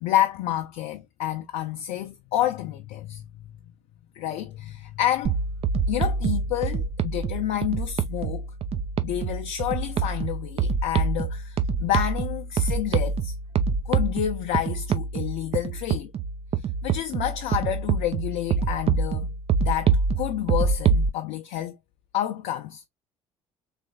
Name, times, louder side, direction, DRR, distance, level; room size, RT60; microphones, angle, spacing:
voice 1, 0.0-3.3 4.1-5.4 5.9-8.5 9.0-13.3 13.9-16.1 16.8-19.3 19.6-21.8 22.1-22.8, left 12 dB, 60° left, 0.5 m, -29 dB
sound 1, 5.2-21.1, right 5 dB, 40° right, 0.5 m, -26 dB
3.3 x 3.2 x 2.2 m
figure-of-eight pair, 55°, 16 cm